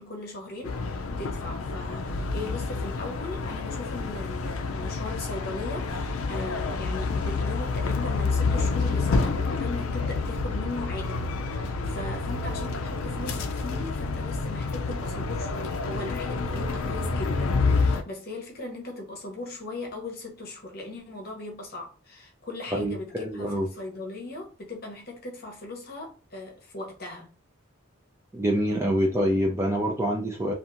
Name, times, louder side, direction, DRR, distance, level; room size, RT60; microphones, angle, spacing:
voice 1, 0.0-27.3, left 2 dB, 45° left, 0.8 m, -38 dB
sound 1, 0.6-18.0, left 4 dB, 75° left, 0.4 m, -28 dB
voice 2, 22.7-23.7 28.3-30.5, equal, 10° right, 0.4 m, -26 dB
2.8 x 2.5 x 2.5 m
head